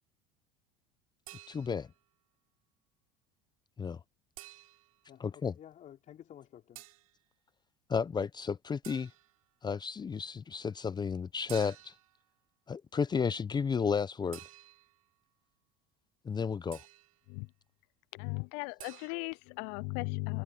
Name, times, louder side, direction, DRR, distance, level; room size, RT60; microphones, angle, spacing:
sound 1, 1.3-2.0 4.4-5.0 6.7-7.1 8.8-9.4 11.5-12.1 14.3-15.0 16.7-17.2 18.8-19.1, right 17 dB, 85° right, 7.4 m, -51 dB
voice 1, 1.5-1.9 3.8-4.0 5.2-5.5 7.9-9.1 9.6-11.9 12.7-14.4 16.2-16.8, left 6 dB, 25° left, 0.8 m, -32 dB
voice 2, 5.1-6.8, left 10 dB, 45° left, 4.7 m, -53 dB
voice 3, 18.1-20.4, left 31 dB, 65° left, 0.4 m, -37 dB
hypercardioid pair, 85°, 18 cm